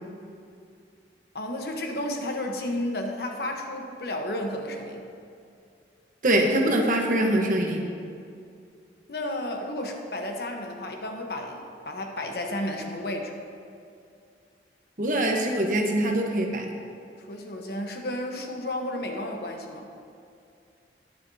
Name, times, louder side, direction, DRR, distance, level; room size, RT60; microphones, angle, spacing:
voice 1, 1.3-5.0 9.1-13.4 17.3-19.9, left 1 dB, 60° left, 2 dB, 1.1 m, -32 dB
voice 2, 6.2-7.9 15.0-16.7, right 1 dB, 45° right, 1 dB, 1.1 m, -23 dB
20.0 x 6.8 x 2.8 m, 2.4 s
head